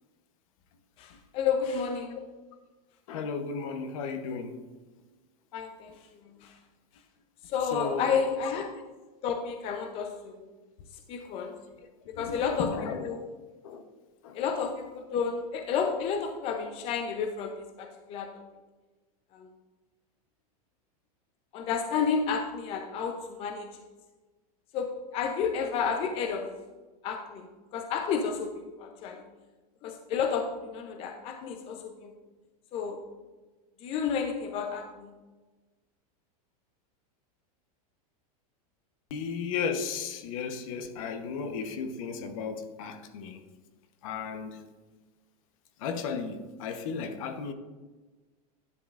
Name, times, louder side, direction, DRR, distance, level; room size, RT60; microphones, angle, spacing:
voice 1, 1.0-2.2 5.5-6.6 7.4-8.7 9.2-10.5 11.1-11.6 12.2-12.7 13.0-13.3 14.3-18.5 19.3-19.5 21.5-23.8 24.7-26.5 27.0-29.3 29.8-32.1 32.7-33.0 33.8-35.1, left 6 dB, 30° left, 4 dB, 0.5 m, -31 dB
voice 2, 3.1-4.6 7.7-8.1 12.1-13.1 13.6-13.8 14.2-14.4 39.1-43.4 44.0-44.6 45.8-47.5, left 5 dB, 60° left, 8 dB, 0.9 m, -34 dB
11.0 x 7.3 x 2.4 m, 1.3 s
supercardioid pair, 150°, 20 cm